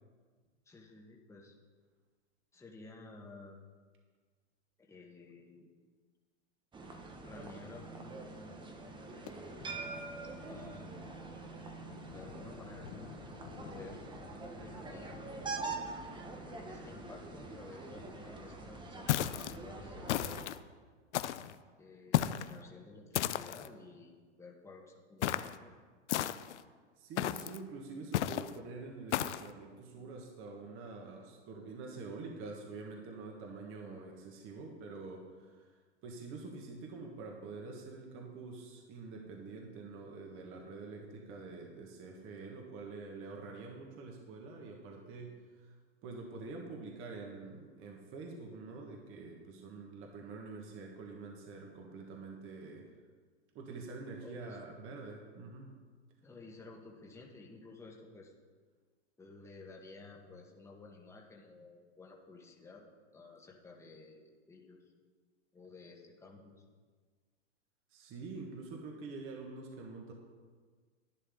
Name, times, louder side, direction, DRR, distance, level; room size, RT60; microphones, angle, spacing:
voice 1, 0.6-1.5 2.5-3.6 4.8-5.7 7.2-8.6 10.5-11.0 12.1-13.1 13.6-14.0 14.4-15.1 16.3-20.4 21.8-25.7 54.2-54.6 56.2-58.3 59.2-62.8 63.1-64.8 65.5-66.6, left 3 dB, 10° left, -1 dB, 1.5 m, -53 dB
sound 1, 6.7-20.5, right 3 dB, 15° right, 1.0 m, -45 dB
sound 2, 9.3-18.6, left 9 dB, 45° left, 0.9 m, -55 dB
sound 3, 19.1-19.6 20.1-20.6 21.1-21.5 22.1-22.5 23.1-23.7 25.2-25.6 26.1-26.6 27.2-27.6 28.1-28.5 29.1-29.5, left 12 dB, 70° left, 0.6 m, -33 dB
voice 2, 27.0-52.9 53.5-55.7 67.9-70.1, right 3 dB, 35° right, 0 dB, 1.8 m, -46 dB
11.0 x 10.5 x 3.9 m, 1.5 s
hypercardioid pair, 125°, 36 cm